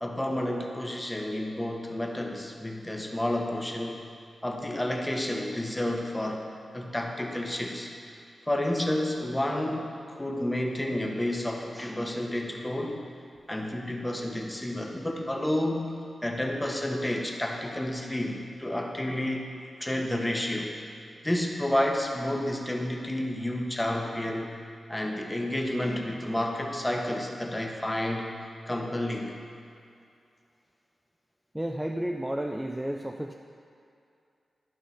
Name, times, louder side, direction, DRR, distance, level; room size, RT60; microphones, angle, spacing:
voice 1, 0.0-4.0 4.4-7.9 8.5-13.0 13.5-19.5 19.8-20.8 21.2-24.5 24.9-28.3 28.7-29.3, left 1 dB, 10° left, 1 dB, 1.2 m, -30 dB
voice 2, 31.5-33.3, right 1 dB, 10° right, 2 dB, 0.5 m, -32 dB
13.0 x 5.9 x 5.7 m, 2.5 s
wide cardioid pair, 90°, 0 cm